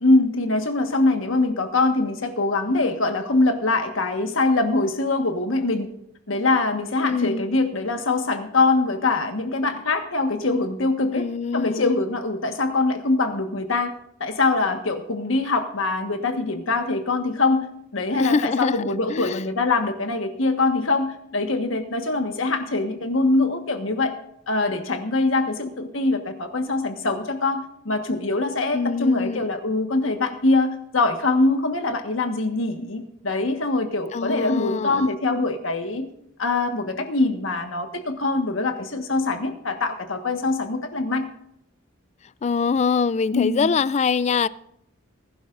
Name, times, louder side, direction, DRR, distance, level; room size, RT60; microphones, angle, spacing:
voice 1, 0.0-5.9 6.3-11.3 11.5-13.9 14.2-17.7 17.9-24.1 24.5-36.1 36.4-41.3 43.3-43.7, left 3 dB, 85° left, 1.5 m, -23 dB
voice 2, 7.0-7.5 11.1-11.9 18.1-18.8 19.1-19.4 28.7-29.5 34.1-35.1 42.4-44.5, left 5 dB, 35° left, 0.3 m, -24 dB
19.5 x 11.5 x 2.6 m
head